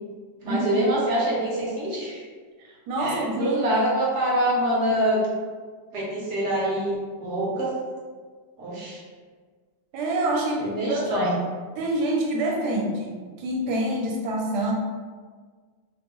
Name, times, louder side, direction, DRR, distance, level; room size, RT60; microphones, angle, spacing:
voice 1, 0.4-2.2 3.0-5.2 5.9-7.7 8.6-9.0 10.6-11.3, right 1 dB, 55° right, -6 dB, 0.8 m, -25 dB
voice 2, 2.6-3.6 9.9-11.2 11.8-14.7, right 1 dB, 75° right, -2 dB, 1.1 m, -26 dB
3.0 x 2.2 x 2.9 m, 1.5 s
omnidirectional pair, 1.9 m